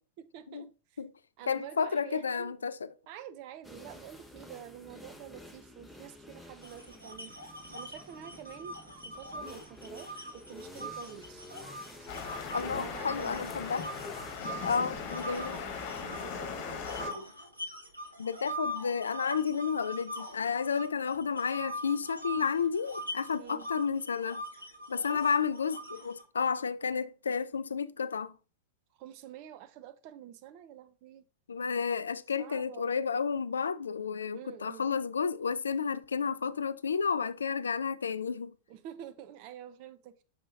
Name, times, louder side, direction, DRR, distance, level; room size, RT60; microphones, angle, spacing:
voice 1, 0.2-1.0 1.4-2.5 3.1-7.3 7.7-8.8 9.0-11.4 12.6-13.5 14.6-14.9 15.2-17.3 23.4-23.7 25.1-25.3 29.0-31.2 32.4-32.9 34.3-34.9 38.7-40.2, right 10 dB, 45° right, 0.7 m, -48 dB
voice 2, 1.5-2.9 12.5-13.9 14.6-15.6 18.2-24.4 24.9-28.3 31.5-38.5, left 6 dB, 70° left, 0.3 m, -31 dB
sound 1, 3.6-14.4, left 1 dB, ahead, 1.0 m, -50 dB
sound 2, 6.6-12.6 13.0-16.4 16.8-26.2, equal, 85° right, 1.4 m, -42 dB
sound 3, 12.1-17.1, left 6 dB, 45° left, 1.4 m, -39 dB
6.7 x 5.5 x 2.5 m
figure-of-eight pair, 90°, 0 cm